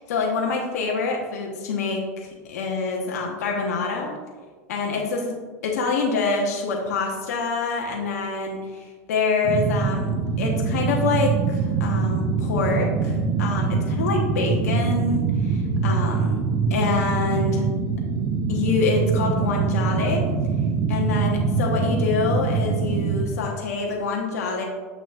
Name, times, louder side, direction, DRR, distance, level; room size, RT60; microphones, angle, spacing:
voice 1, 0.0-4.2 4.7-5.4 5.6-16.4 16.7-17.7 18.5-20.2 20.9-24.6, left 4 dB, 80° left, 0 dB, 0.9 m, -26 dB
sound 1, 9.4-23.3, right 5 dB, 50° right, 0.6 m, -24 dB
7.1 x 6.0 x 2.4 m, 1.4 s
hypercardioid pair, 105°, 9 cm